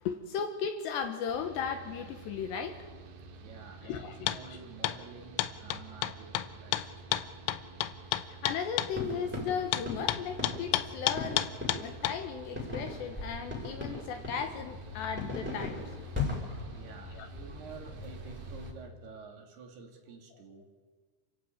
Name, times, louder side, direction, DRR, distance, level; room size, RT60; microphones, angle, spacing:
voice 1, 0.0-2.9 3.8-4.6 8.3-15.9 17.1-17.3, left 7 dB, 70° left, 7 dB, 3.0 m, -36 dB
Mechanical fan, 1.3-18.7, right 5 dB, 70° right, 4.7 m, -50 dB
voice 2, 3.4-7.1 16.6-20.7, right 5 dB, 55° right, 3 dB, 3.9 m, -50 dB
sound 1, 4.3-4.4 4.8-5.0 5.4-8.9 9.7-12.2, left 13 dB, 85° left, 3.6 m, -31 dB
sound 2, 8.9-18.7, left 3 dB, ahead, 5.2 m, -39 dB
28.5 x 15.0 x 9.1 m, 1.4 s
omnidirectional pair, 6.0 m